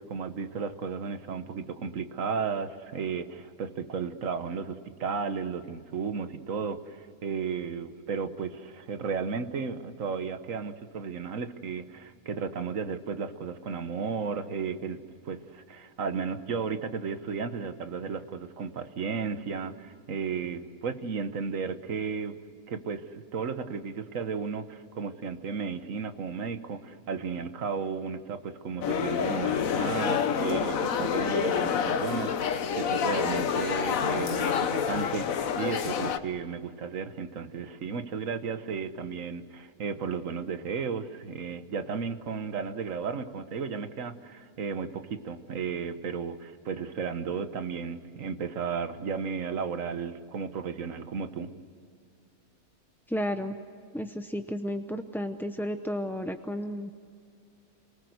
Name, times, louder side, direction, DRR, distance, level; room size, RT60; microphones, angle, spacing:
voice 1, 0.0-15.0 15.2-22.4 22.7-51.5, right 5 dB, 60° right, 10 dB, 1.5 m, -34 dB
sound 1, 28.8-36.2, left 7 dB, 65° left, 1.3 m, -28 dB
voice 2, 53.1-53.6 53.9-56.9, equal, 5° left, 7 dB, 0.4 m, -32 dB
27.5 x 19.5 x 8.0 m, 2.4 s
omnidirectional pair, 1.6 m